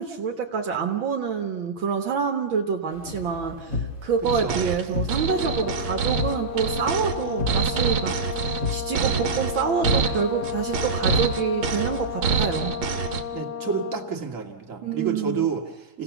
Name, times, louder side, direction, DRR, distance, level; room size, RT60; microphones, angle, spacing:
voice 1, 0.0-3.7 4.0-12.7 14.8-15.5, right 6 dB, 70° right, 3 dB, 2.1 m, -27 dB
sound 1, 2.9-12.3, left 3 dB, 40° left, 2.3 m, -34 dB
sound 2, 4.2-13.2, right 7 dB, 85° right, 2.1 m, -26 dB
Brass instrument, 5.3-14.1, left 9 dB, 60° left, 1.4 m, -33 dB
voice 2, 13.3-16.0, right 6 dB, 40° right, 1 dB, 2.3 m, -29 dB
27.5 x 17.0 x 7.0 m, 1.2 s
omnidirectional pair, 2.2 m